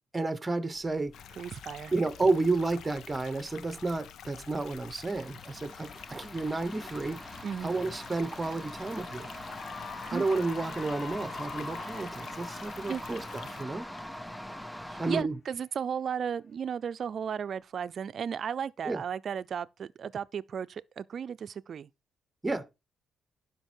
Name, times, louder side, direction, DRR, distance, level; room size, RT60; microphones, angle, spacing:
voice 1, 0.1-1.1 1.9-9.3 10.1-13.9 15.0-15.4 18.8-19.0 22.4-22.7, right 3 dB, 20° right, 1.0 m, -31 dB
sound 1, 0.7-15.2, equal, 5° left, 0.4 m, -44 dB
sound 2, 1.1-13.6, left 9 dB, 70° left, 0.7 m, -48 dB
voice 2, 1.4-1.9 7.4-7.8 10.1-10.3 12.9-13.0 14.9-21.9, right 7 dB, 55° right, 0.5 m, -35 dB
Cheering / Applause, 8.0-8.3 8.7-15.3, left 4 dB, 50° left, 1.3 m, -46 dB
11.5 x 5.4 x 4.4 m
cardioid pair, 90°, 0 cm